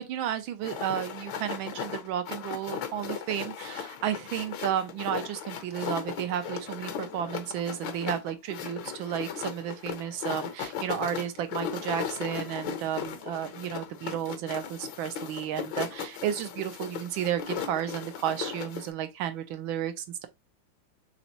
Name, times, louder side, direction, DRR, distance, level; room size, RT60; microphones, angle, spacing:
voice 1, 0.0-20.3, right 10 dB, 75° right, 1.3 m, -32 dB
sound 1, 0.6-18.9, left 8 dB, 70° left, 1.4 m, -37 dB
4.1 x 3.4 x 2.8 m
omnidirectional pair, 2.4 m